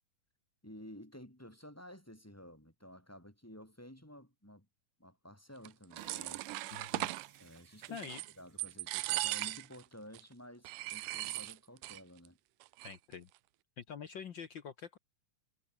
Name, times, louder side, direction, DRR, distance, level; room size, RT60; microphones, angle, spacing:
voice 1, 0.6-4.7 5.0-6.4 7.4-8.1 8.4-12.4, equal, 5° left, 4.5 m, -53 dB
sound 1, 5.7-7.3 7.8-8.3 8.6-9.8 10.1-10.2 10.6-12.0 12.3-12.4 12.6-13.1, right 18 dB, 80° right, 2.2 m, -38 dB
sound 2, 6.0-9.4, right 9 dB, 55° right, 1.6 m, -58 dB
voice 2, 6.7-7.1 7.9-8.2 12.8-13.3 13.8-15.0, left 7 dB, 70° left, 1.1 m, -46 dB
omnidirectional pair, 3.8 m